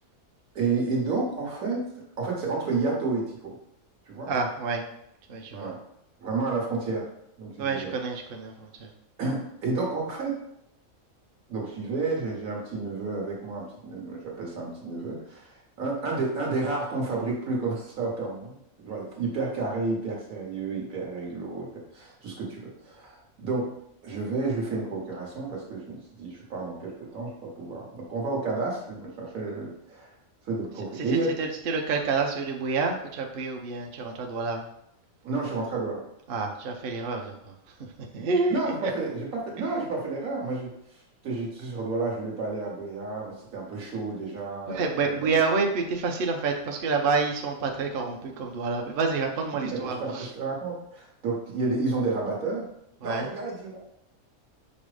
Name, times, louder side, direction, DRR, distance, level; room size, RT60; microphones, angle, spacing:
voice 1, 0.5-1.8 2.2-3.6 4.1-4.3 5.5-5.8 6.2-7.1 7.4-7.9 9.2-10.4 11.5-18.6 18.8-21.7 21.9-23.7 24.0-30.1 30.4-31.4 35.2-36.0 38.1-40.7 41.2-45.3 49.6-52.7 53.0-53.8, right 3 dB, 80° right, -3 dB, 1.7 m, -31 dB
voice 2, 4.3-4.8 5.3-5.7 7.6-8.7 31.4-34.6 36.3-37.3 38.1-38.6 44.7-50.0 53.0-53.3, right 4 dB, 55° right, 2 dB, 0.6 m, -28 dB
5.4 x 2.0 x 4.8 m, 0.76 s
omnidirectional pair, 1.5 m